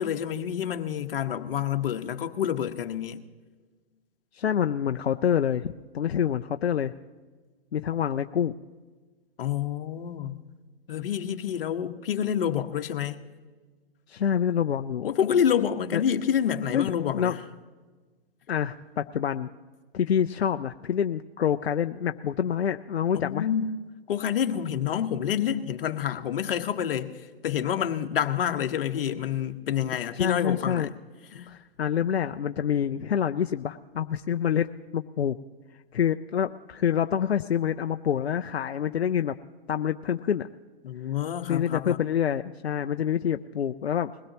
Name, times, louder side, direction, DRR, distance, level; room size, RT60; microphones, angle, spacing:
voice 1, 0.0-3.2 9.4-10.4 10.9-13.2 15.0-17.4 23.1-23.8 24.1-27.1 27.4-30.9 31.3-31.5 40.8-42.0, left 9 dB, 60° left, 1.2 m, -28 dB
voice 2, 4.3-6.9 7.7-8.5 14.1-15.1 15.9-16.0 16.7-17.4 18.5-19.5 19.9-23.5 30.2-30.9 31.5-35.4 35.9-39.4 39.7-40.5 41.5-44.3, left 9 dB, 90° left, 0.6 m, -27 dB
21.5 x 16.5 x 2.9 m
hypercardioid pair, 135°, 31 cm